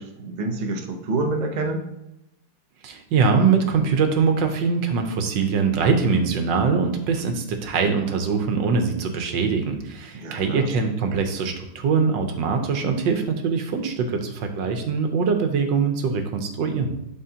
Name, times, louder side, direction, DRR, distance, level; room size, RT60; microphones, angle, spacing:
voice 1, 0.0-1.8 10.1-10.7, right 2 dB, 55° right, 2 dB, 0.5 m, -27 dB
voice 2, 2.8-16.9, right 5 dB, 75° right, 5 dB, 1.5 m, -22 dB
11.0 x 4.2 x 2.8 m, 0.88 s
omnidirectional pair, 2.1 m